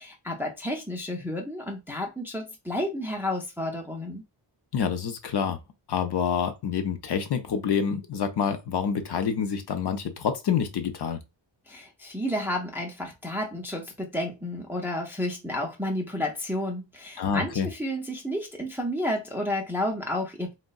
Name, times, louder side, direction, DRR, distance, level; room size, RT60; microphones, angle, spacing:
voice 1, 0.0-4.2 11.7-20.5, left 1 dB, 5° right, 0.4 m, -31 dB
voice 2, 4.7-5.6 5.9-11.2 17.2-17.7, left 7 dB, 60° left, 0.5 m, -27 dB
3.5 x 2.0 x 2.3 m
wide cardioid pair, 170°, 46 cm